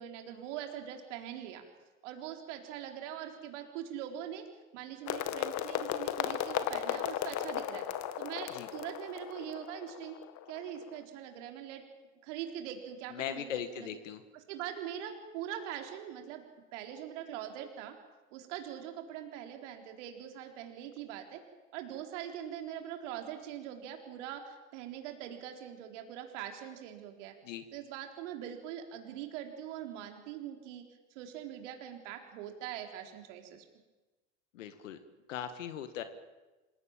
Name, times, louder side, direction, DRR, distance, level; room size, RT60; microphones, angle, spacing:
voice 1, 0.0-1.6 2.0-4.4 4.7-7.9 8.2-10.2 10.5-11.8 12.2-13.9 14.5-16.4 16.7-17.9 18.3-21.4 21.7-27.3 27.7-30.8 31.1-33.6, right 10 dB, 65° right, 4 dB, 4.2 m, -42 dB
sound 1, 5.1-11.0, left 11 dB, 50° left, 2.0 m, -36 dB
voice 2, 13.1-14.2 27.4-27.6 34.5-35.0 35.3-36.0, left 9 dB, 75° left, 9 dB, 1.9 m, -39 dB
27.0 x 17.5 x 9.0 m, 1.2 s
hypercardioid pair, 80°, 38 cm